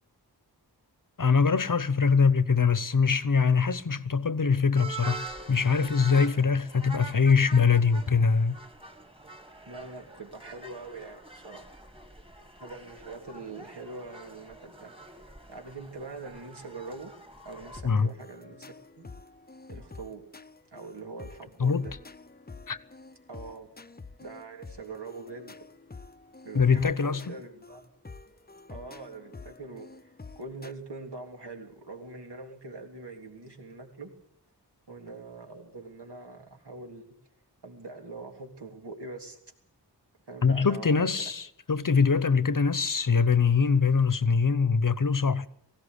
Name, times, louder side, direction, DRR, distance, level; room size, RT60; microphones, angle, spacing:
voice 1, 1.2-8.6 17.8-18.1 21.6-21.9 22.7-22.8 26.5-27.3 40.4-45.5, left 5 dB, 50° left, 1.0 m, -23 dB
sound 1, 4.8-17.8, right 3 dB, 15° right, 2.1 m, -45 dB
voice 2, 9.7-11.8 12.6-17.1 17.4-19.1 19.7-20.2 20.7-21.9 23.3-23.7 24.2-25.6 26.4-27.9 28.7-34.1 34.9-37.1 37.6-39.4 40.3-41.3, right 3 dB, 75° right, 3.5 m, -43 dB
sound 2, 17.8-30.7, left 4 dB, 25° left, 0.7 m, -48 dB
19.0 x 16.5 x 8.3 m
wide cardioid pair, 70°, 41 cm